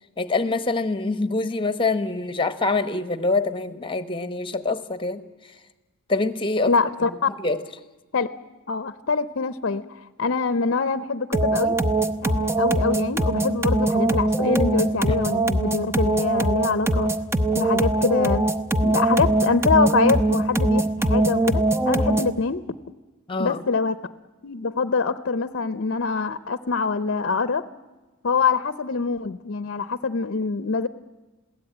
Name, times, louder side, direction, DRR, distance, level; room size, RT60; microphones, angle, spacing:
voice 1, 0.2-5.2 6.1-6.7 7.4-7.6 23.3-23.6, left 3 dB, 25° left, 12 dB, 1.1 m, -25 dB
voice 2, 6.7-7.3 8.1-8.3 8.7-11.8 12.2-17.1 17.5-18.5 18.8-22.6 23.4-24.0 24.4-27.6 28.2-30.9, left 4 dB, 55° left, 13 dB, 0.7 m, -24 dB
sound 1, 11.3-22.4, right 2 dB, 10° right, 0.8 m, -22 dB
22.0 x 16.5 x 9.0 m, 1.2 s
head